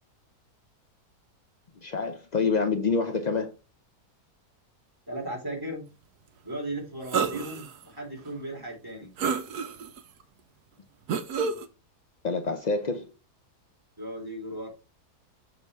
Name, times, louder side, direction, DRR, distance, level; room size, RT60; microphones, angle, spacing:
voice 1, 1.8-3.5 12.2-13.1, left 4 dB, 85° left, 0.3 m, -27 dB
voice 2, 5.1-5.8 6.4-9.1 14.0-14.7, right 1 dB, 15° right, 2.8 m, -36 dB
sound 1, 7.1-7.7 8.3-8.4 9.2-10.0 11.1-11.7, right 5 dB, 75° right, 1.3 m, -28 dB
6.7 x 3.9 x 4.5 m
omnidirectional pair, 1.7 m